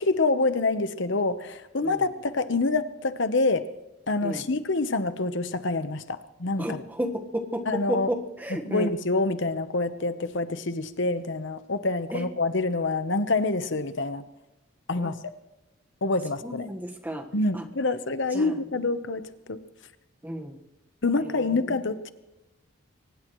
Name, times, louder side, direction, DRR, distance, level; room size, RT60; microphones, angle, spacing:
voice 1, 0.0-3.6 4.1-6.8 7.7-8.1 8.5-14.2 14.9-15.3 16.0-16.7 17.3-19.2 19.5-19.6 21.0-22.1, left 3 dB, 60° left, 11 dB, 1.0 m, -26 dB
voice 2, 6.6-7.6 7.9-8.9 12.1-12.2 15.0-15.1 16.4-17.2 17.5-17.6 18.3-18.5 20.2-20.6, equal, 10° right, 3 dB, 1.4 m, -32 dB
24.0 x 19.0 x 3.1 m, 1.0 s
head